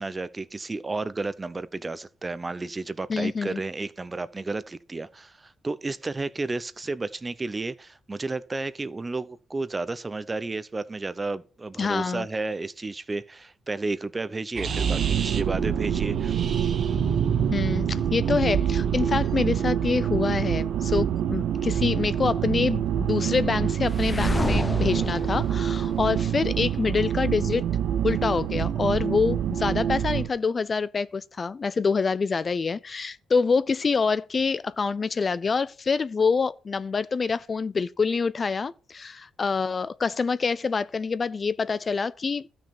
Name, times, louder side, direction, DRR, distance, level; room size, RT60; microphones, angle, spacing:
voice 1, 0.0-16.5, right 3 dB, 25° right, 0.7 m, -32 dB
voice 2, 3.1-3.6 11.8-12.3 17.5-27.6 28.0-42.5, left 5 dB, 40° left, 0.4 m, -26 dB
sound 1, 14.5-19.6, right 5 dB, 55° right, 1.2 m, -30 dB
sound 2, 14.6-30.3, right 9 dB, 80° right, 0.7 m, -26 dB
sound 3, 23.9-26.8, left 3 dB, 20° left, 0.8 m, -30 dB
13.0 x 6.2 x 4.3 m
cardioid pair, 80°, 0 cm